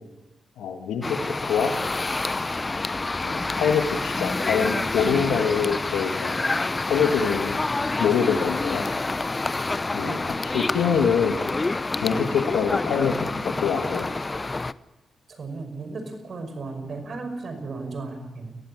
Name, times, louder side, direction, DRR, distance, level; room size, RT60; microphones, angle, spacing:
voice 1, 0.6-1.7 3.2-6.4 6.8-7.6 8.0-8.8 9.9-10.2 10.5-11.4 12.0-14.1, left 7 dB, 80° left, 7 dB, 1.8 m, -24 dB
sound 1, 1.0-14.7, left 3 dB, 30° left, 0.8 m, -28 dB
voice 2, 15.3-18.6, right 3 dB, 60° right, 7 dB, 5.7 m, -35 dB
21.0 x 15.5 x 9.6 m, 1.0 s
supercardioid pair, 45°, 0 cm